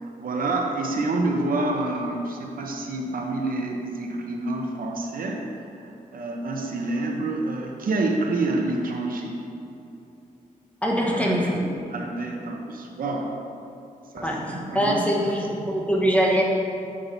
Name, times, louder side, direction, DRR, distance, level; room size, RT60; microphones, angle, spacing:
voice 1, 0.0-5.5 5.7-9.4 11.0-11.6 11.9-13.3 14.1-15.8, right 2 dB, 70° right, 1 dB, 0.7 m, -28 dB
voice 2, 10.8-11.6 14.2-16.4, equal, 10° left, -2 dB, 1.0 m, -23 dB
7.4 x 5.5 x 2.6 m, 2.7 s
cardioid pair, 60°, 15 cm